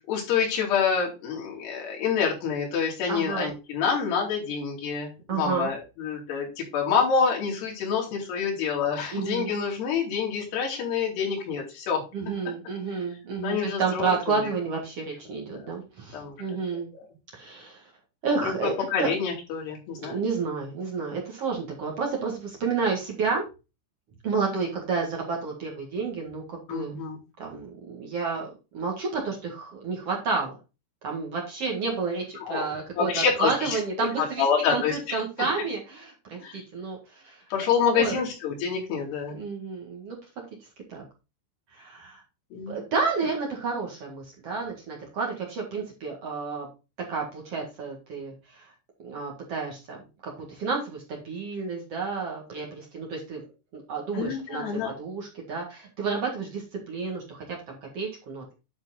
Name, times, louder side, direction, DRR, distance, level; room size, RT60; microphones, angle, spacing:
voice 1, 0.1-12.0 13.4-14.5 16.1-16.4 16.7-17.0 18.6-20.2 26.7-27.2 32.4-32.7 33.0-34.1 34.4-35.2 36.4-36.6 37.5-39.4 42.5-42.8 54.1-54.9, left 6 dB, 60° left, -2 dB, 4.7 m, -27 dB
voice 2, 3.1-3.5 5.3-5.7 9.1-9.5 12.1-16.9 17.3-17.9 18.2-18.7 19.0-19.1 19.9-23.4 24.2-27.0 27.4-30.5 31.0-37.4 37.9-38.2 39.3-40.2 40.9-41.0 41.7-42.2 42.7-46.7 47.1-48.7 49.0-53.4 53.7-58.5, right 4 dB, 60° right, 0 dB, 1.6 m, -31 dB
10.0 x 4.5 x 4.1 m, 0.29 s
omnidirectional pair, 5.6 m